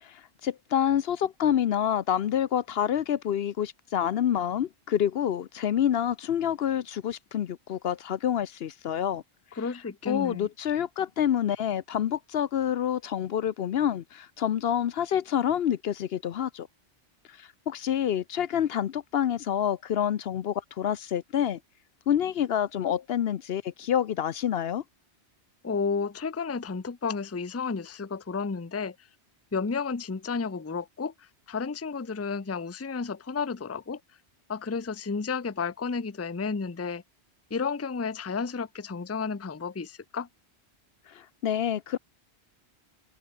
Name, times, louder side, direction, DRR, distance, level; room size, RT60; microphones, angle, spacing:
voice 1, 0.0-9.2 10.1-16.7 17.4-21.6 22.1-24.8 41.1-42.0, left 9 dB, 65° left, 0.8 m, -27 dB
voice 2, 9.6-10.5 25.6-29.0 29.5-31.1 31.5-34.0 34.5-37.0 37.5-40.3, left 5 dB, 15° left, 0.6 m, -32 dB
omnidirectional pair, 1.1 m